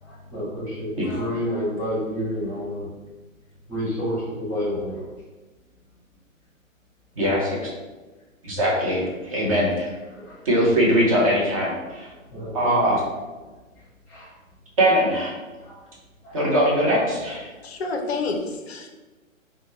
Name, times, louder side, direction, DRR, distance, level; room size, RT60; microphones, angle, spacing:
voice 1, 0.0-2.9 3.7-5.1 10.1-10.4 11.8-11.9 12.3-12.9 14.1-14.3 15.6-15.8 16.2-16.5, equal, 5° left, -10 dB, 1.0 m, -29 dB
voice 2, 7.2-7.7 8.4-9.9 10.4-12.1 12.5-13.0 14.8-15.3 16.3-17.5, equal, 25° right, -5 dB, 0.6 m, -21 dB
voice 3, 17.6-18.9, left 3 dB, 50° left, 4 dB, 0.4 m, -28 dB
2.9 x 2.1 x 3.0 m, 1.2 s
figure-of-eight pair, 130°, 41 cm